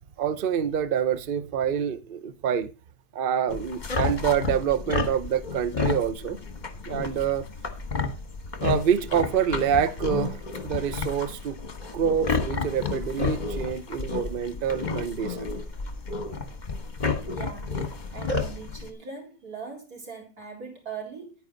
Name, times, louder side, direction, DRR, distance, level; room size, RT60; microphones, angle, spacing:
voice 1, 0.2-2.7 3.1-6.4 6.8-7.5 8.6-11.6 11.9-15.5, right 8 dB, 70° right, 0.5 m, -26 dB
sound 1, 3.5-18.9, left 4 dB, 30° left, 1.1 m, -31 dB
voice 2, 17.3-21.3, right 5 dB, 50° right, 4.4 m, -40 dB
10.5 x 9.4 x 3.9 m
omnidirectional pair, 2.1 m